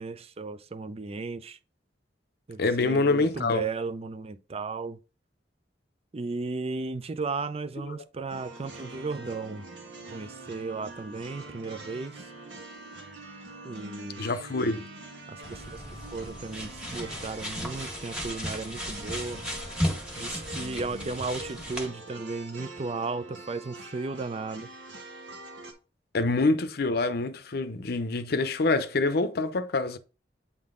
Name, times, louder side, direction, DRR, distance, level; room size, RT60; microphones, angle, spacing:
voice 1, 0.0-1.6 2.5-5.0 6.1-9.7 10.1-12.1 13.6-14.3 15.3-15.8 16.1-19.4 20.2-24.7, right 3 dB, 35° right, 0.5 m, -35 dB
voice 2, 2.6-3.7 7.8-8.0 14.2-14.8 26.1-30.0, left 3 dB, 60° left, 0.6 m, -26 dB
sound 1, 8.3-25.7, right 2 dB, 90° right, 1.6 m, -44 dB
sound 2, 15.4-21.9, equal, 5° right, 1.5 m, -35 dB
8.5 x 3.8 x 3.7 m
head